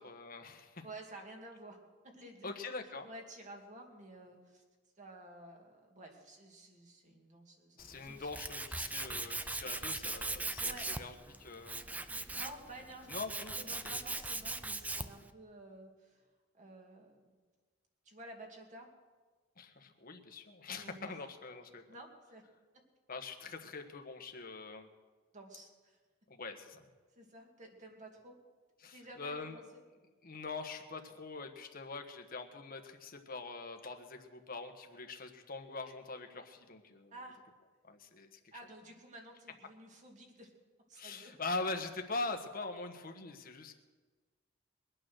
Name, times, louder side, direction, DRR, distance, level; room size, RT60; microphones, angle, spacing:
voice 1, 0.0-0.8 2.4-3.1 7.8-11.1 11.4-11.9 13.1-14.0 19.6-21.8 23.1-24.9 26.3-26.8 28.8-29.6 30.2-37.1 37.8-38.4 40.9-43.7, left 3 dB, 45° left, 5 dB, 1.4 m, -43 dB
voice 2, 0.8-1.8 2.0-2.5 3.0-4.6 5.0-8.3 10.6-10.9 12.1-13.2 13.6-16.3 16.5-17.3 18.0-18.9 20.8-21.0 21.9-22.4 25.3-26.0 27.2-28.4 28.9-29.8 37.1-37.4 38.5-40.5 40.9-41.3, right 1 dB, 40° right, 1 dB, 2.4 m, -52 dB
Tools, 7.8-15.3, right 2 dB, 10° right, 0.5 m, -40 dB
22.5 x 9.0 x 6.4 m, 1.4 s
head